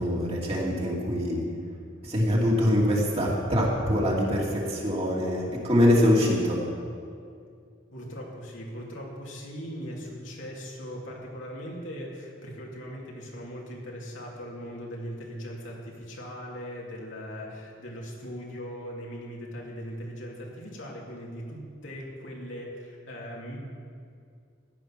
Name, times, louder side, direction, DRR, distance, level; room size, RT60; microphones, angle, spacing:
voice 1, 0.0-1.4 2.0-6.6, equal, 30° right, -3 dB, 2.7 m, -24 dB
voice 2, 7.9-23.6, equal, 75° left, -3 dB, 2.9 m, -39 dB
15.0 x 9.7 x 6.0 m, 2.3 s
head